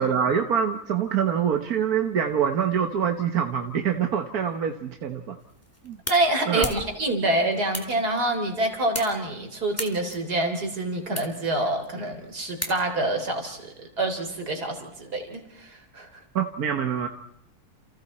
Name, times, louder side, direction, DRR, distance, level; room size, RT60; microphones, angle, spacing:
voice 1, 0.0-5.4 5.8-6.0 6.5-6.7 16.3-17.1, right 8 dB, 70° right, 5 dB, 1.7 m, -25 dB
sound 1, 5.4-13.2, equal, 10° left, 2.8 m, -39 dB
voice 2, 6.1-16.1, right 2 dB, 90° right, 5 dB, 4.0 m, -26 dB
29.5 x 29.0 x 4.3 m, 0.76 s
omnidirectional pair, 1.6 m